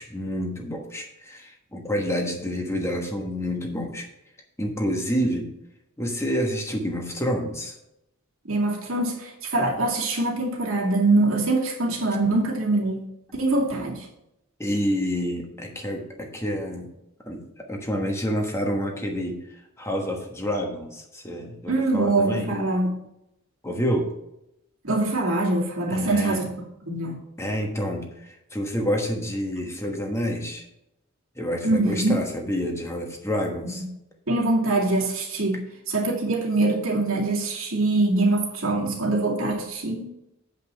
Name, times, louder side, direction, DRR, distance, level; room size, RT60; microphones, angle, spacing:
voice 1, 0.0-4.1 4.6-5.5 6.0-7.8 14.6-16.9 17.2-22.5 23.6-24.1 25.9-26.5 27.4-30.6 31.4-33.8, equal, 15° left, 2 dB, 1.2 m, -28 dB
voice 2, 8.5-13.0 13.3-14.1 21.7-23.0 24.8-26.5 26.9-27.2 31.6-32.2 33.8-33.9 34.3-35.6 35.9-40.1, right 2 dB, 85° right, -2 dB, 2.4 m, -23 dB
8.4 x 5.4 x 5.7 m, 0.83 s
head